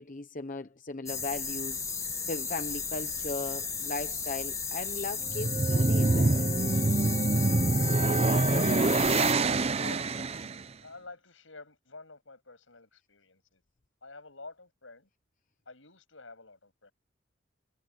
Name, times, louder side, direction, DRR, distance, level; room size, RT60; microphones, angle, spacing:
voice 1, 0.0-1.8 2.3-7.0, left 3 dB, 45° left, 0.9 m, -38 dB
sound 1, 1.1-9.3, left 5 dB, 15° left, 1.8 m, -34 dB
sound 2, 5.2-10.6, right 3 dB, 30° right, 0.6 m, -25 dB
voice 2, 8.5-8.9 9.6-13.6 14.0-15.1 15.7-16.9, left 3 dB, 80° left, 7.5 m, -49 dB
head